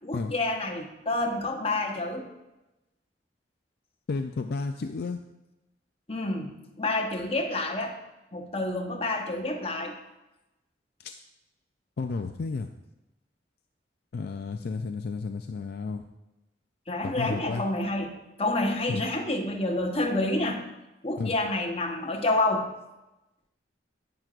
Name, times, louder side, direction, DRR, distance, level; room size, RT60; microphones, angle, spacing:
voice 1, 0.0-2.3 6.1-8.0 8.3-10.0 16.9-18.1 18.4-20.6 21.0-22.7, left 2 dB, 35° left, 2 dB, 1.1 m, -28 dB
voice 2, 4.1-5.2 11.0-11.2 12.0-12.7 14.1-16.0 17.0-17.6 18.9-19.0 21.2-21.3, left 4 dB, 60° left, 6 dB, 0.4 m, -32 dB
10.5 x 9.1 x 2.5 m, 0.99 s
head